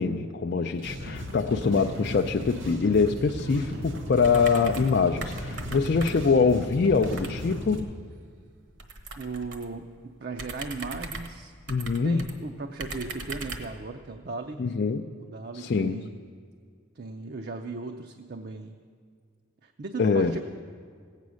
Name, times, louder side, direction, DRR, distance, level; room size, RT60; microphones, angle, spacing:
voice 1, 0.0-7.9 11.7-12.2 14.6-15.1 15.5-16.1 20.0-20.3, left 4 dB, 55° left, 4 dB, 0.4 m, -24 dB
sound 1, 0.7-7.8, equal, 85° right, 1.8 m, -36 dB
sound 2, 4.2-5.0 5.2-6.4 7.0-7.4 8.8-9.7 10.3-12.3 12.8-13.8, right 3 dB, 65° right, 1.2 m, -39 dB
voice 2, 9.2-11.5 12.0-14.6 15.2-16.2 17.0-18.7 19.6-20.4, right 3 dB, 50° right, 5 dB, 0.5 m, -37 dB
16.5 x 8.3 x 6.3 m, 2.1 s
head